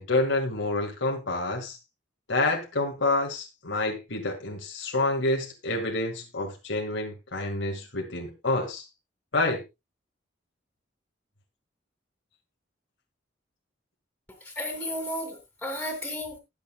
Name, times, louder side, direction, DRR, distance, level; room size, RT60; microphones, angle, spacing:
voice 1, 0.0-1.8 2.3-8.8 9.3-9.6, left 2 dB, 85° left, 2 dB, 2.0 m, -28 dB
voice 2, 14.4-16.4, left 1 dB, 5° left, 3 dB, 2.8 m, -33 dB
20.0 x 7.1 x 2.3 m, 0.22 s
head